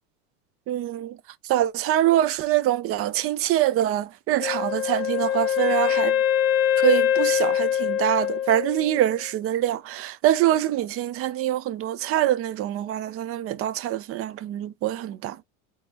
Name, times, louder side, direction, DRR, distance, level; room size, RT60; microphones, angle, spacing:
voice 1, 0.7-1.2 1.5-6.2 6.8-15.4, right 12 dB, 45° right, 0.4 m, -24 dB
Wind instrument woodwind instrument, 4.4-9.2, left 10 dB, 45° left, 0.6 m, -24 dB
3.5 x 3.0 x 2.8 m
supercardioid pair, 110°, 34 cm